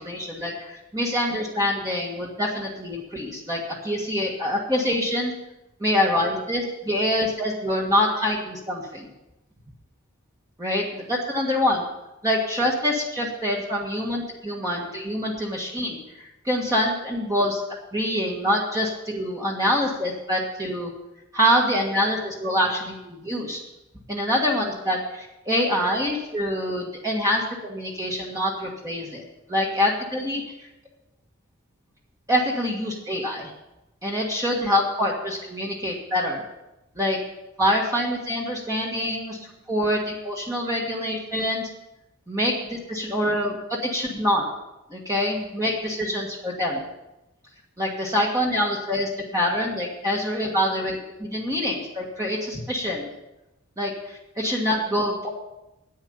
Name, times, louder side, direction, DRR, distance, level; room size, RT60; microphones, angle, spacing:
voice 1, 0.0-5.3 5.8-9.1 10.6-11.8 12.2-17.6 17.9-20.9 21.3-23.6 24.1-29.2 29.5-30.4 32.3-33.5 34.0-36.4 36.9-37.2 37.6-41.7 42.3-44.4 44.9-46.9 47.8-53.1 53.8-55.3, equal, 15° right, -3 dB, 1.6 m, -25 dB
10.5 x 9.2 x 6.9 m, 0.93 s
head